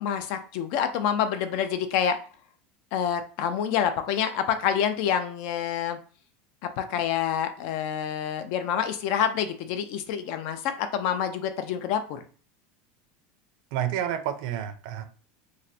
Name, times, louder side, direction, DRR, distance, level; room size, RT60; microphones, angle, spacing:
voice 1, 0.0-2.2 2.9-6.0 6.6-12.2, left 8 dB, 55° left, 0.4 m, -27 dB
voice 2, 13.7-15.0, right 10 dB, 60° right, 0.5 m, -29 dB
3.1 x 2.5 x 2.7 m
supercardioid pair, 160°, 4 cm